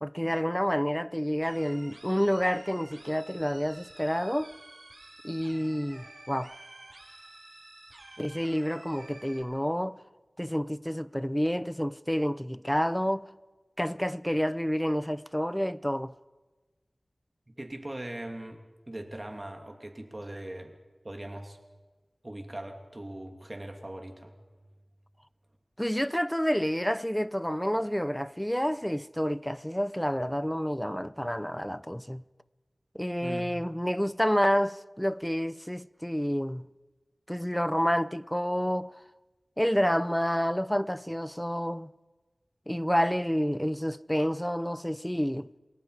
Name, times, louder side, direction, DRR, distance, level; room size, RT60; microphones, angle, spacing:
voice 1, 0.0-4.5 5.2-6.5 8.2-10.0 10.4-13.3 13.8-16.1 25.8-32.2 32.9-36.7 37.3-38.9 39.6-41.9 42.7-45.5, equal, 5° left, 0.6 m, -29 dB
sound 1, 1.4-9.4, right 1 dB, 60° right, 7.1 m, -50 dB
voice 2, 17.5-18.6 18.9-20.8 21.0-21.6 22.2-24.3 33.2-33.5, right 1 dB, 35° right, 2.9 m, -40 dB
28.0 x 20.5 x 5.1 m
wide cardioid pair, 45°, 0 cm